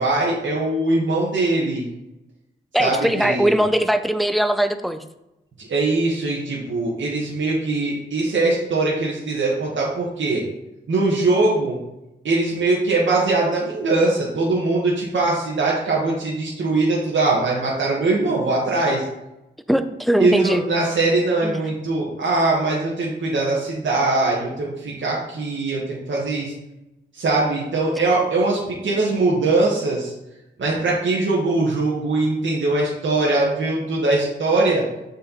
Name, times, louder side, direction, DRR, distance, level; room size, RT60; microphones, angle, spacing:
voice 1, 0.0-1.8 2.8-3.5 5.7-10.4 10.9-11.8 12.2-19.0 20.2-26.5 27.1-30.1 30.6-34.8, right 2 dB, 80° right, -5 dB, 1.8 m, -21 dB
voice 2, 2.7-5.0 19.7-20.6 21.4-21.6, right 1 dB, ahead, 9 dB, 0.5 m, -20 dB
7.3 x 5.0 x 4.2 m, 0.92 s
wide cardioid pair, 120°, 19 cm